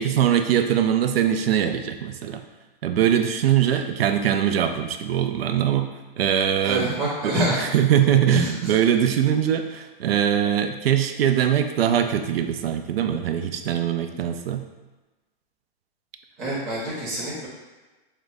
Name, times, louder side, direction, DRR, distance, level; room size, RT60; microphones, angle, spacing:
voice 1, 0.0-2.4 2.8-14.7, right 9 dB, 85° right, 7 dB, 0.5 m, -22 dB
voice 2, 6.6-7.6 8.3-8.7 16.4-17.5, equal, 10° right, -9 dB, 0.4 m, -26 dB
3.7 x 2.1 x 3.4 m, 1.2 s
hypercardioid pair, 175°, 29 cm